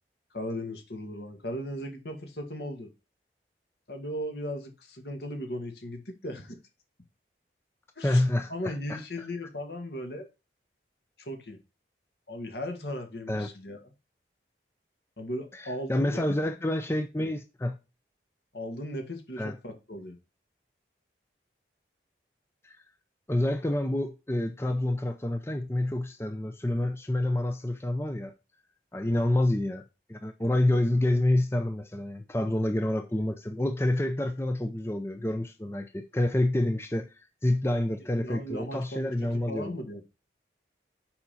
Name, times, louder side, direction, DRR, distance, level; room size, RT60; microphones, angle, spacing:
voice 1, 0.3-2.9 3.9-6.6 8.0-8.2 8.5-10.3 11.2-11.6 12.3-13.8 15.2-16.4 17.2-17.3 18.5-20.2 29.0-29.2 38.2-39.1 39.5-40.0, equal, 70° left, 2.0 m, -37 dB
voice 2, 8.0-9.0 13.3-13.5 15.5-17.8 19.4-19.6 22.6-22.8 23.3-28.3 28.9-29.8 30.1-39.7, left 1 dB, 15° left, 0.5 m, -28 dB
7.1 x 5.2 x 4.2 m
head